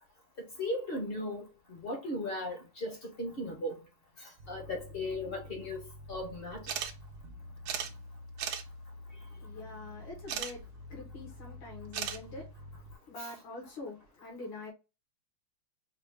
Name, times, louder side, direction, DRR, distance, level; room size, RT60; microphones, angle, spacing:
voice 1, 0.4-1.4 1.7-3.8 4.5-5.8 6.1-6.6 13.2-13.3, left 1 dB, 45° left, 0.7 m, -37 dB
sound 1, 4.4-13.0, left 1 dB, 85° right, 1.5 m, -48 dB
voice 2, 5.0-5.7 9.3-14.7, left 2 dB, 80° left, 2.0 m, -46 dB
sound 2, 6.7-6.9 7.2-7.3 7.7-7.9 8.4-8.6 10.3-10.5 11.9-12.2, right 8 dB, 65° right, 1.0 m, -35 dB
4.8 x 2.3 x 3.3 m
omnidirectional pair, 2.1 m